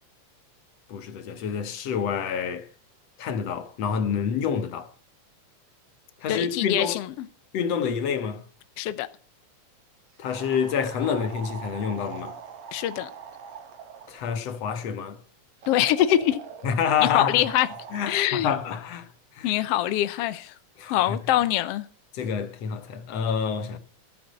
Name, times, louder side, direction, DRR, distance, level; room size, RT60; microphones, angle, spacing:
voice 1, 0.9-2.7 3.2-4.9 6.2-7.0 7.5-8.4 10.2-12.4 14.1-15.2 16.6-17.4 17.9-19.1 19.4-19.5 20.8-21.2 22.1-23.8, left 7 dB, 60° left, 2.4 m, -27 dB
voice 2, 6.3-7.1 8.8-9.1 12.7-13.1 15.7-16.4 17.1-17.7 18.1-18.5 19.4-20.6 20.9-21.8, left 13 dB, 75° left, 1.4 m, -24 dB
sound 1, 10.3-14.2 15.6-16.8 17.3-18.3, right 6 dB, 60° right, 2.9 m, -42 dB
16.0 x 8.9 x 6.5 m
omnidirectional pair, 3.6 m